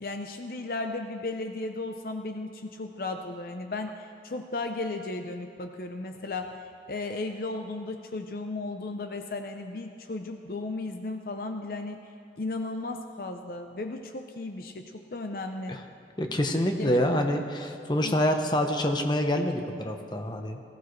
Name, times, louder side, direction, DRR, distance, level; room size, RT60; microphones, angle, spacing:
voice 1, 0.0-6.6 6.9-12.0 12.4-15.8 16.8-17.0 18.0-18.1, left 2 dB, 55° left, 6 dB, 0.6 m, -35 dB
voice 2, 16.2-20.6, left 1 dB, 25° left, 4 dB, 0.9 m, -26 dB
19.0 x 15.5 x 3.2 m, 2.3 s
head